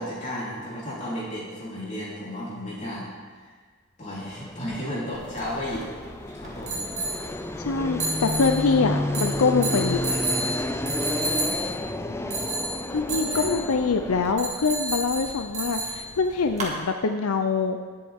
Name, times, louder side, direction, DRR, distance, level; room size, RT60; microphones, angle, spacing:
voice 1, 0.0-3.5 4.0-5.9 6.3-6.8 11.7-12.4 13.2-13.6, equal, 35° left, -7 dB, 3.9 m, -34 dB
Fixed-wing aircraft airplane, 4.1-14.3, left 1 dB, 10° left, 0.4 m, -31 dB
sound 1, 5.1-16.7, right 2 dB, 30° right, 2.1 m, -32 dB
voice 2, 7.7-10.0 12.9-17.8, left 4 dB, 80° left, 6 dB, 0.6 m, -24 dB
19.5 x 7.8 x 3.6 m, 1.5 s
head